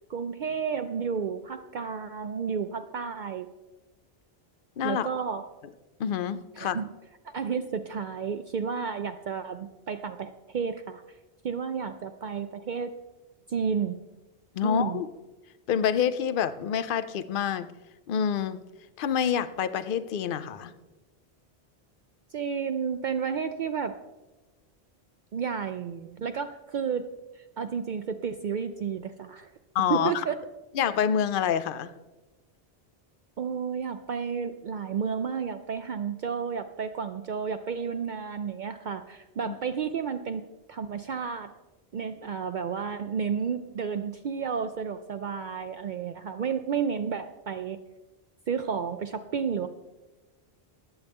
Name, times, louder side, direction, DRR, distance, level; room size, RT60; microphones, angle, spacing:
voice 1, 0.1-3.5 4.8-5.4 6.6-6.9 7.2-11.0 11.4-12.9 13.5-14.0 14.6-15.0 22.3-23.9 25.3-27.1 27.3-29.5 29.9-30.4 33.4-40.4 40.7-41.5 41.9-47.8 48.5-49.7, right 6 dB, 55° right, 8 dB, 0.6 m, -31 dB
voice 2, 4.8-5.1 6.0-6.8 14.5-15.1 15.7-17.7 18.1-18.6 19.0-20.7 29.7-30.2 30.7-31.9 39.5-39.6, left 8 dB, 60° left, 13 dB, 0.7 m, -27 dB
20.0 x 7.8 x 3.6 m, 1.1 s
omnidirectional pair, 1.1 m